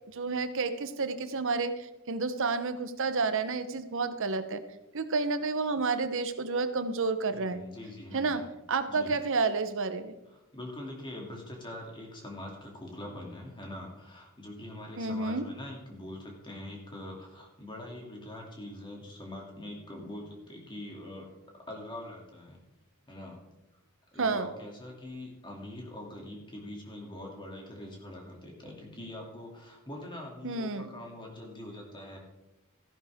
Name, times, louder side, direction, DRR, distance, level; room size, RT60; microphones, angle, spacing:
voice 1, 0.1-4.6 4.9-7.6 8.1-8.4 8.7-10.2 15.0-15.4 24.2-24.5 30.4-30.9, right 4 dB, 65° right, 11 dB, 0.9 m, -30 dB
voice 2, 7.3-8.5 8.9-9.2 10.3-21.3 21.7-22.6 23.1-23.4 24.1-32.2, left 1 dB, 20° left, 0 dB, 2.8 m, -43 dB
14.0 x 11.0 x 3.6 m, 0.98 s
head